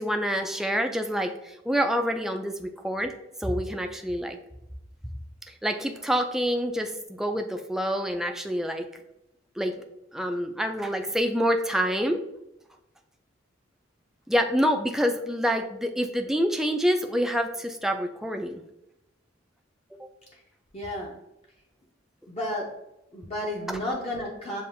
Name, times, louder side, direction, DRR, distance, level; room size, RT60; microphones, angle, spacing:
voice 1, 0.0-3.1 3.4-4.4 5.5-8.9 9.6-12.2 14.3-18.6 19.9-20.0, equal, ahead, 5 dB, 0.3 m, -27 dB
voice 2, 20.7-21.1 22.3-22.7 23.1-24.6, left 1 dB, 30° left, -3 dB, 0.6 m, -32 dB
6.9 x 2.4 x 2.6 m, 0.88 s
head